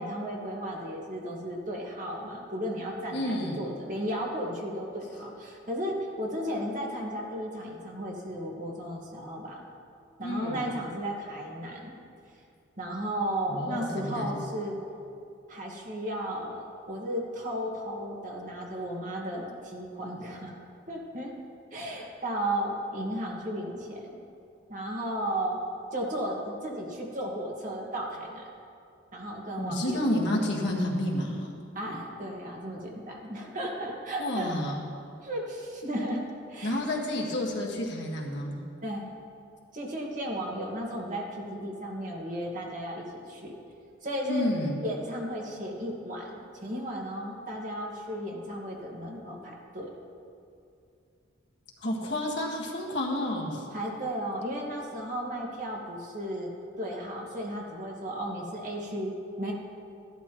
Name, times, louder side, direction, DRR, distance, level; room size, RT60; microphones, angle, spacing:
voice 1, 0.0-9.6 10.2-11.9 12.8-14.8 15.5-20.5 20.9-21.3 21.7-24.1 24.7-25.6 25.9-28.4 29.1-30.0 31.7-34.5 35.2-36.2 36.5-36.8 38.8-39.1 39.7-43.5 44.0-44.5 44.8-46.3 46.6-49.9 53.7-56.5 56.8-59.5, equal, 45° right, -2 dB, 1.7 m, -34 dB
voice 2, 3.1-3.6 10.2-10.7 13.5-14.4 29.6-31.5 34.2-34.8 36.6-38.6 44.3-44.8 51.8-53.6, left 1 dB, 65° left, -2 dB, 1.7 m, -30 dB
15.0 x 11.5 x 3.0 m, 2.5 s
head